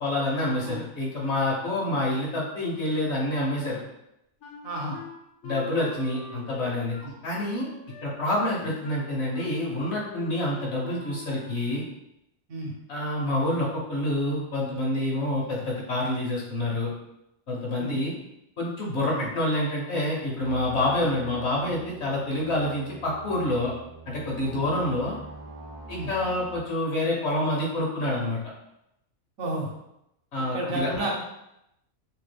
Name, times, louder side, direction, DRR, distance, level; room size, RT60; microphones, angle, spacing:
voice 1, 0.0-3.8 5.4-7.0 7.2-7.7 8.0-11.8 12.9-16.9 17.5-18.1 18.6-23.7 24.1-25.2 25.9-28.4 30.3-31.0, left 1 dB, 60° left, -3 dB, 0.9 m, -27 dB
Wind instrument woodwind instrument, 4.4-11.9, left 2 dB, 80° left, 1.0 m, -44 dB
voice 2, 4.6-5.0 7.0-7.1 12.5-12.7 17.8-17.9 19.2-19.3 24.5-24.6 26.0-26.1 29.4-29.7 30.5-31.2, right 1 dB, 75° right, -1 dB, 1.1 m, -31 dB
sound 1, 20.4-26.6, right 3 dB, 50° right, 0.4 m, -44 dB
2.9 x 2.3 x 3.2 m, 0.84 s
omnidirectional pair, 1.5 m